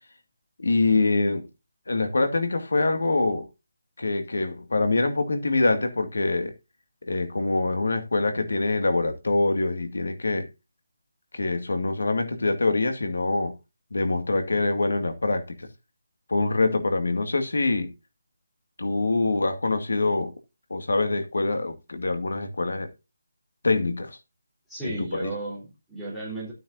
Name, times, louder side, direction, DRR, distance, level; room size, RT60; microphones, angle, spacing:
voice 1, 0.6-1.5 1.9-3.5 4.0-6.5 7.1-10.5 11.3-13.5 13.9-15.7 16.3-17.9 18.8-20.3 20.7-22.9 23.6-24.2 24.8-25.3, left 3 dB, 75° left, 2.2 m, -24 dB
voice 2, 24.7-26.5, right 2 dB, ahead, 3.9 m, -34 dB
13.0 x 9.0 x 2.7 m
hypercardioid pair, 180°, 0 cm